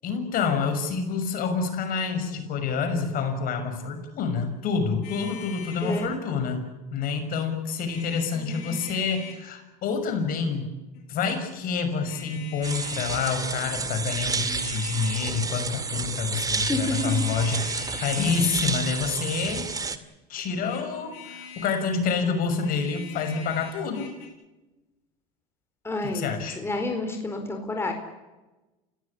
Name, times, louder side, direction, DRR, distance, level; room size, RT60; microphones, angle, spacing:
voice 1, 0.0-10.7 11.1-19.7 20.3-24.1 26.0-26.6, left 5 dB, 50° left, 6 dB, 6.3 m, -28 dB
sound 1, 5.0-6.1 7.8-9.4 10.9-11.4 12.0-13.4 14.0-15.3 16.7-19.1 20.5-21.8 22.5-24.3, left 6 dB, 65° left, 6.8 m, -44 dB
voice 2, 5.8-6.2 8.3-8.8 16.7-17.2 25.8-27.9, left 2 dB, 15° left, 3 dB, 4.5 m, -30 dB
sound 2, 12.6-20.0, right 4 dB, 20° right, 2.2 m, -30 dB
29.0 x 17.0 x 8.5 m, 1.1 s
supercardioid pair, 95°, 18 cm